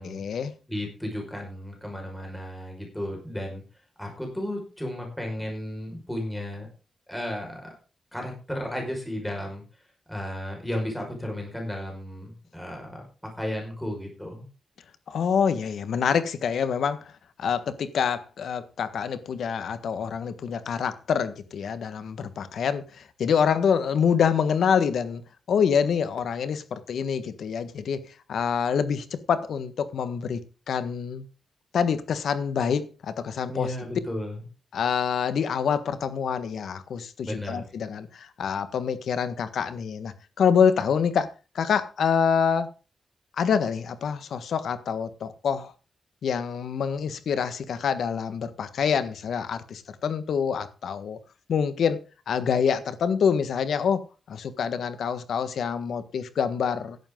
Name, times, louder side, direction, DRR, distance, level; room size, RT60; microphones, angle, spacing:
voice 1, 0.0-0.5 15.1-17.1 17.4-31.3 31.7-33.7 34.7-41.3 41.5-42.7 43.4-45.7 46.2-51.2 51.5-52.0 52.3-57.0, left 7 dB, 80° left, 1.5 m, -26 dB
voice 2, 0.7-3.6 4.0-6.7 7.1-7.7 8.1-9.6 10.1-13.0 13.4-14.4 33.5-34.4 37.2-37.6, left 1 dB, 5° left, 5.2 m, -34 dB
15.5 x 11.0 x 3.8 m
wide cardioid pair, 175°, 0 cm